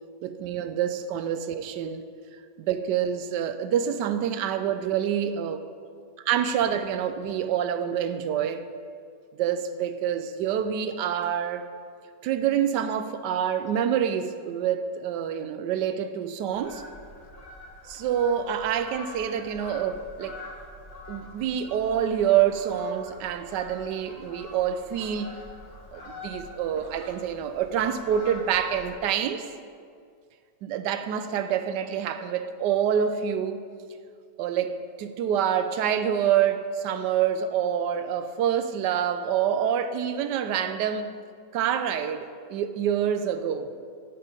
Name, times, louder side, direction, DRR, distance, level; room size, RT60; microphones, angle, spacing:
voice 1, 0.2-2.0 2.7-5.6 6.3-8.7 9.4-11.7 12.2-16.8 17.9-20.4 21.1-25.3 25.9-29.4 30.6-33.6 34.4-41.1 41.5-43.7, right 9 dB, 85° right, 1.2 m, -27 dB
Fowl, 16.5-28.9, left 2 dB, 65° left, 2.0 m, -44 dB
9.6 x 6.8 x 5.1 m
omnidirectional pair, 1.8 m